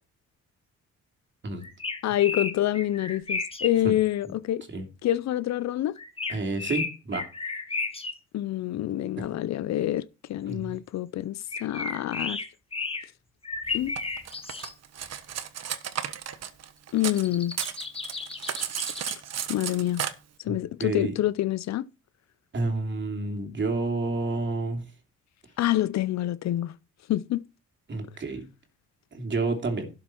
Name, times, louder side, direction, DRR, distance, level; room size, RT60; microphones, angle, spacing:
sound 1, 1.6-3.7 4.0-4.1 6.0-8.1 11.5-13.1 13.4-14.7 15.0-15.1 17.0-19.2, left 4 dB, 20° left, 1.5 m, -33 dB
voice 1, 2.0-4.6 5.0-6.0 8.3-12.4 13.7-13.9 16.9-17.5 19.5-20.0 20.4-21.9 25.6-26.7 27.1-27.4, left 13 dB, 65° left, 0.6 m, -27 dB
voice 2, 6.3-7.2 9.2-9.3 10.4-10.7 20.5-21.1 22.5-24.8 27.9-28.4 29.1-29.9, right 3 dB, 40° right, 2.9 m, -29 dB
Cutlery silverware, 14.0-17.3 17.5-20.1, right 9 dB, 55° right, 1.2 m, -33 dB
12.0 x 6.9 x 4.5 m
cardioid pair, 90°, 30 cm